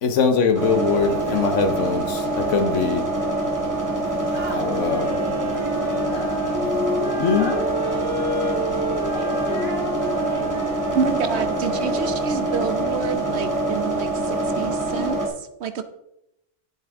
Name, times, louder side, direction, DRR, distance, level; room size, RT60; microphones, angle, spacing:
voice 1, 0.0-3.1 4.5-5.1 7.2-7.5, left 5 dB, 85° left, 1.2 m, -22 dB
sound 1, 0.5-15.3, right 2 dB, 15° right, 1.9 m, -25 dB
voice 2, 0.9-1.6 4.3-4.7 5.5-6.4 7.2-8.8 9.1-9.9 10.3-10.8 11.3-12.0, left 1 dB, 40° left, 3.7 m, -39 dB
Wind instrument woodwind instrument, 4.5-12.8, left 1 dB, 50° right, 2.8 m, -31 dB
voice 3, 10.9-14.1 14.5-15.8, right 5 dB, 65° right, 1.0 m, -28 dB
10.5 x 8.7 x 3.6 m
omnidirectional pair, 1.2 m